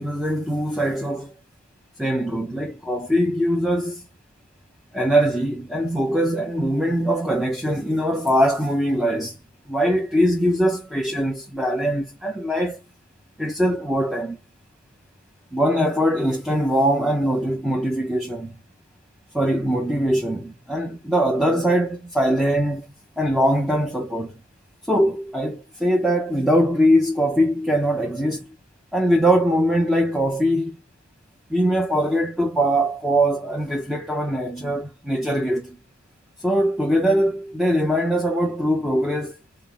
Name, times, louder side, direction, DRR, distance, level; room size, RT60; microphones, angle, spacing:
voice 1, 0.0-1.3 2.0-4.0 4.9-9.4 9.7-12.8 13.4-14.4 15.5-18.6 19.3-22.9 23.2-24.4 24.8-28.6 28.9-30.8 31.5-35.8 36.4-39.4, equal, ahead, 0.5 m, -22 dB
4.1 x 2.0 x 3.6 m
head